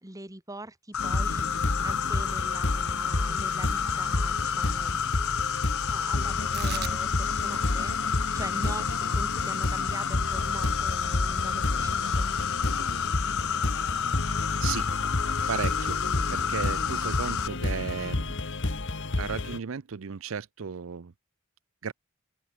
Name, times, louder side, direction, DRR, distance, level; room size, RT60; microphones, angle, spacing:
voice 1, 0.0-5.0 5.8-12.3 15.8-15.9, right 2 dB, 15° right, 2.1 m, -42 dB
Insect, 0.9-17.5, left 7 dB, 80° left, 1.2 m, -30 dB
sound 1, 1.0-19.6, left 2 dB, 60° left, 1.5 m, -31 dB
Tearing, 6.4-13.1, right 8 dB, 50° right, 1.6 m, -45 dB
voice 2, 15.5-16.0 16.3-18.3 19.2-21.1 21.8-21.9, right 6 dB, 65° right, 0.6 m, -34 dB
open air
head